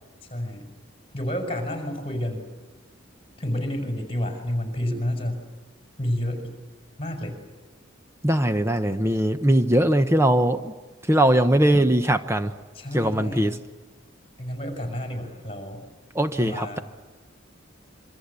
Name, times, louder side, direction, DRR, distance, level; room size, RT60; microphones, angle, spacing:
voice 1, 0.3-0.7 1.1-2.5 3.4-5.4 6.0-6.6 7.0-7.4 12.7-13.6 14.4-15.9 16.4-16.8, left 1 dB, 25° left, 5 dB, 5.9 m, -30 dB
voice 2, 8.2-10.7 11.1-12.5 12.9-13.6 16.1-16.8, right 1 dB, 10° right, 8 dB, 0.9 m, -20 dB
26.5 x 24.0 x 8.4 m, 1.3 s
head